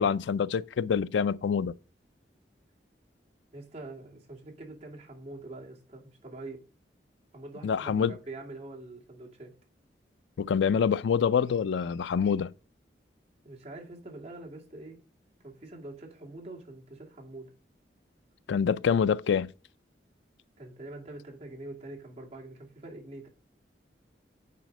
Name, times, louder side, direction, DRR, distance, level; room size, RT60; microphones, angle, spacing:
voice 1, 0.0-1.7 7.6-8.1 10.4-12.5 18.5-19.5, left 7 dB, 85° left, 0.4 m, -26 dB
voice 2, 3.5-6.6 7.3-9.5 13.4-15.0 15.4-17.5 20.6-23.3, right 2 dB, 35° right, 2.3 m, -44 dB
9.2 x 4.1 x 5.2 m
head